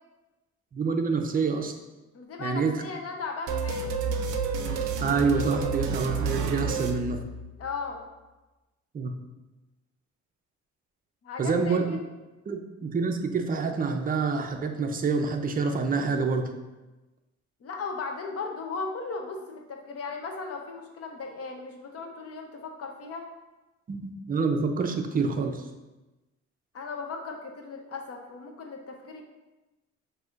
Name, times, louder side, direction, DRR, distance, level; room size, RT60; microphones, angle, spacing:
voice 1, 0.7-1.7 2.4-2.8 5.0-7.2 8.9-9.1 11.4-12.0 12.5-16.5 23.9-25.6, right 4 dB, 30° right, 5 dB, 0.5 m, -27 dB
voice 2, 2.1-3.9 7.6-8.0 11.2-11.8 17.6-23.3 26.7-29.2, left 4 dB, 50° left, 3 dB, 0.7 m, -36 dB
sound 1, 3.5-7.8, right 4 dB, 90° right, 0.5 m, -30 dB
5.9 x 2.7 x 2.4 m, 1.1 s
cardioid pair, 90°, 30 cm